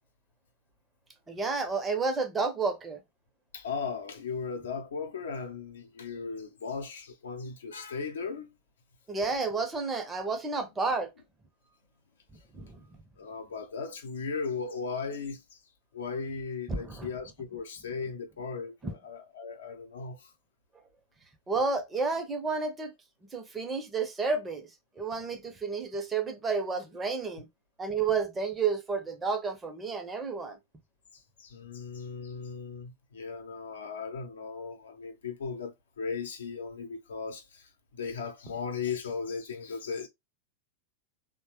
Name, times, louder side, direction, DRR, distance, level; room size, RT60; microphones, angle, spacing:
voice 1, 1.3-3.0 9.1-11.1 12.5-12.9 16.7-17.1 18.8-19.0 21.5-22.9 23.3-24.7 25.0-27.5 27.8-30.6, right 4 dB, 15° right, 0.7 m, -31 dB
voice 2, 3.5-8.5 13.2-15.4 15.9-20.3 31.1-40.1, left 5 dB, 65° left, 0.7 m, -37 dB
3.2 x 2.2 x 2.9 m
figure-of-eight pair, 90°, 0 cm